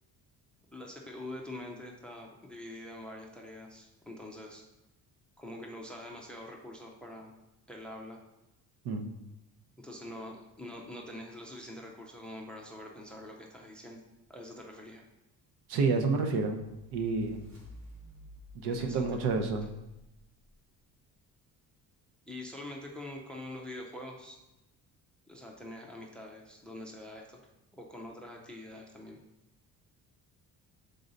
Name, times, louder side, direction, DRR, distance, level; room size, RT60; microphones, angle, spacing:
voice 1, 0.7-4.6 5.4-7.3 7.7-8.2 9.8-14.0 14.3-15.0 18.6-19.2 22.3-24.4 25.3-27.4 27.7-29.2, left 1 dB, 5° left, 1 dB, 0.3 m, -45 dB
voice 2, 15.7-16.6 16.9-17.4 18.6-19.7, right 4 dB, 85° right, 5 dB, 0.9 m, -29 dB
sound 1, 16.5-20.5, equal, 45° right, 1.4 m, -52 dB
6.5 x 3.9 x 3.9 m, 0.95 s
cardioid pair, 180°, 38 cm